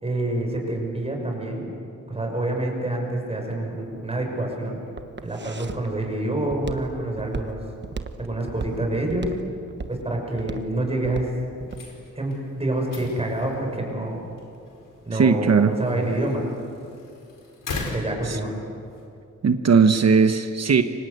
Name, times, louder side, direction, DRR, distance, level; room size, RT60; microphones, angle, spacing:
voice 1, 0.0-1.7 2.1-4.7 5.2-7.6 8.2-9.3 9.9-11.3 12.2-14.2 15.1-16.5 17.9-18.6, right 1 dB, 20° right, 1 dB, 5.9 m, -27 dB
Walk footsteps, 3.7-11.9, right 4 dB, 35° right, 1.2 m, -36 dB
sound 1, 11.6-19.1, left 3 dB, 90° left, 4.9 m, -40 dB
voice 2, 15.1-15.7 18.3-18.4 19.4-20.8, right 5 dB, 55° right, 7 dB, 1.1 m, -18 dB
29.5 x 25.0 x 8.1 m, 2.6 s
wide cardioid pair, 155°, 31 cm